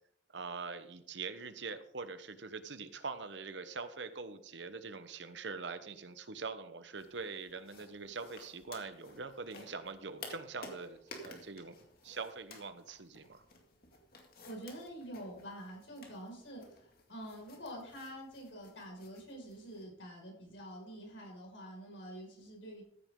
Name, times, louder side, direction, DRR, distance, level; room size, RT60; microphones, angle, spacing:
voice 1, 0.3-11.0 11.2-13.4, right 4 dB, 75° right, 10 dB, 1.0 m, -43 dB
sound 1, 6.9-19.8, left 3 dB, 55° left, 2.2 m, -55 dB
voice 2, 14.4-22.8, equal, 85° left, 0 dB, 5.4 m, -47 dB
14.5 x 9.3 x 3.8 m, 0.67 s
head